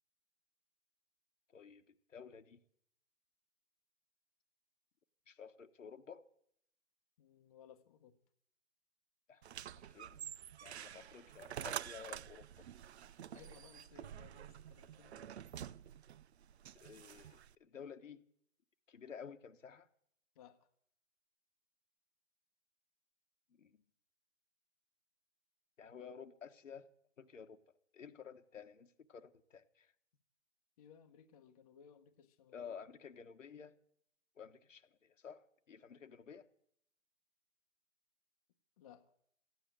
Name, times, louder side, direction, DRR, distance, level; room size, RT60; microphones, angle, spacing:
voice 1, 1.5-2.6 5.3-6.2 9.3-9.4 9.7-10.2 10.6-12.7 16.7-18.2 18.9-19.9 23.5-23.8 25.8-26.9 27.2-27.6 27.9-29.9 32.5-33.8 34.4-36.5, left 6 dB, 80° left, 7 dB, 1.3 m, -53 dB
voice 2, 7.2-8.2 13.3-15.5 20.3-20.7 30.8-32.7 38.8-39.1, left 8 dB, 30° left, 5 dB, 1.0 m, -61 dB
sound 1, 9.4-17.5, right 10 dB, 60° right, 0.5 m, -48 dB
15.0 x 9.3 x 9.1 m, 0.70 s
hypercardioid pair, 150°, 37 cm